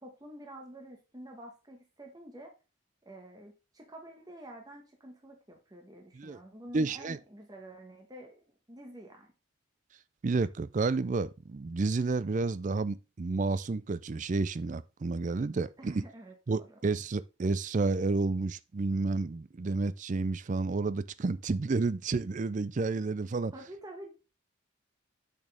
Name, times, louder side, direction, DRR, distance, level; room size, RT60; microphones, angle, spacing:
voice 1, 0.0-2.5 3.0-8.4 8.7-9.3 15.8-16.8 23.5-24.1, right 1 dB, 20° right, 1.5 m, -48 dB
voice 2, 6.7-7.2 10.2-16.0 16.5-23.5, right 3 dB, 40° right, 0.4 m, -30 dB
8.4 x 6.3 x 3.6 m
head